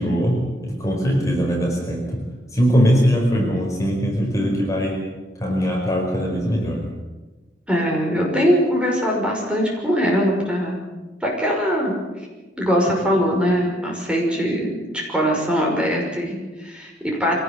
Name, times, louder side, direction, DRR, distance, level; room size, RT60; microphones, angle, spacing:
voice 1, 0.0-2.2 2.5-5.0 5.4-6.9, equal, 20° left, -1 dB, 5.1 m, -21 dB
voice 2, 7.7-10.8 11.2-11.9 12.6-17.3, equal, 5° right, -1 dB, 5.8 m, -21 dB
24.0 x 18.5 x 8.2 m, 1.2 s
head